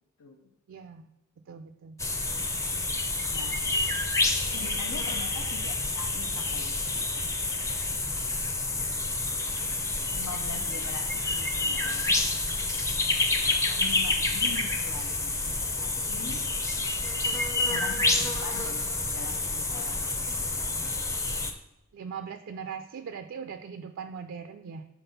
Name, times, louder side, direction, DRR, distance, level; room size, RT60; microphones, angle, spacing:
voice 1, 0.7-1.1 1.5-2.0 21.9-24.9, right 6 dB, 60° right, 7 dB, 0.3 m, -40 dB
sound 1, 2.0-21.5, left 2 dB, 15° left, 0.5 m, -28 dB
voice 2, 3.3-3.7 4.5-7.3 10.1-12.3 13.7-15.4 15.8-16.5 17.6-20.4, left 4 dB, 85° left, 2 dB, 0.6 m, -43 dB
5.8 x 3.7 x 5.5 m, 0.94 s
head